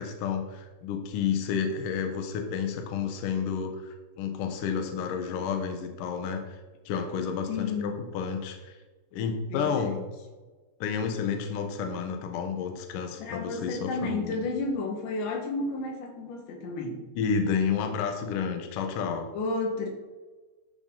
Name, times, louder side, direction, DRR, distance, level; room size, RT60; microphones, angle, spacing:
voice 1, 0.0-6.6 6.9-8.8 9.1-10.0 10.8-14.5 17.1-19.3, left 6 dB, 65° left, 5 dB, 2.3 m, -30 dB
voice 2, 7.5-8.0 9.5-9.7 13.2-17.0 19.3-19.9, left 3 dB, 85° left, 3 dB, 4.0 m, -31 dB
13.0 x 7.1 x 4.0 m, 1.3 s
omnidirectional pair, 5.0 m